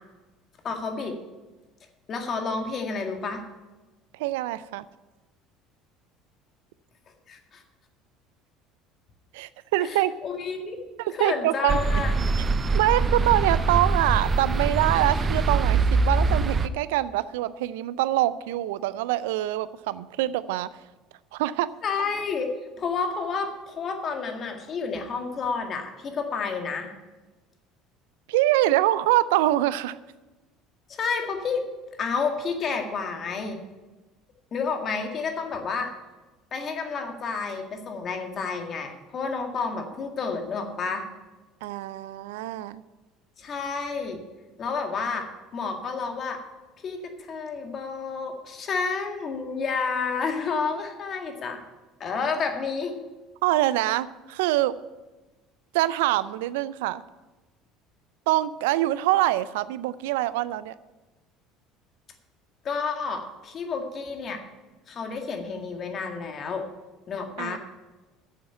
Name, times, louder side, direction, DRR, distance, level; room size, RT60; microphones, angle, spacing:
voice 1, 0.6-1.2 2.1-3.4 7.3-7.6 9.8-10.8 11.1-12.1 21.8-22.5 22.8-26.9 30.9-31.6 32.0-33.6 34.5-35.9 36.5-41.1 43.4-44.2 44.6-46.4 46.8-51.6 52.0-53.0 62.6-64.4 64.9-66.6 67.1-67.6, left 5 dB, 45° left, 4 dB, 1.9 m, -30 dB
voice 2, 4.2-4.8 9.3-10.1 11.0-11.8 12.7-20.7 21.3-21.7 28.3-30.0 41.6-42.8 53.4-54.8 55.7-57.0 58.3-60.7 67.4-67.6, right 15 dB, 75° right, 17 dB, 0.4 m, -24 dB
sound 1, 11.7-16.7, right 3 dB, 35° right, 0.6 m, -23 dB
9.3 x 7.2 x 8.8 m, 1.2 s
hypercardioid pair, 70°, 0 cm